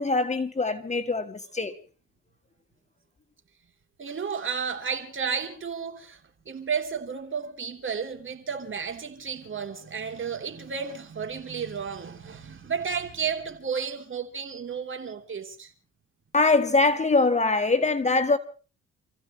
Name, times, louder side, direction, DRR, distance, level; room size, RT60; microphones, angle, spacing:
voice 1, 0.0-1.7 16.3-18.4, left 3 dB, 25° left, 1.5 m, -23 dB
voice 2, 4.0-6.2 6.4-15.7, right 6 dB, 40° right, 3.4 m, -32 dB
29.0 x 15.5 x 3.1 m
cardioid pair, 90°, 30 cm